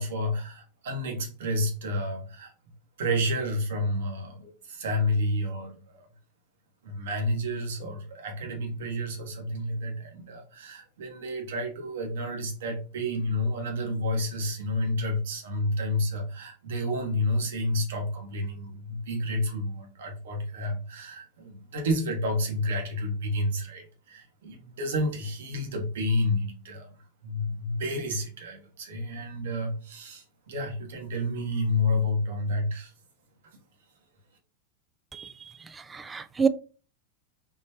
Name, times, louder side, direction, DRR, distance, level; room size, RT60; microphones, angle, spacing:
voice 1, 0.0-2.5 3.0-6.0 6.8-26.9 27.2-32.9, left 1 dB, 60° right, 1.2 m, -30 dB
voice 2, 35.7-36.5, right 5 dB, 15° right, 0.4 m, -28 dB
3.8 x 3.2 x 2.9 m
figure-of-eight pair, 90°, 0 cm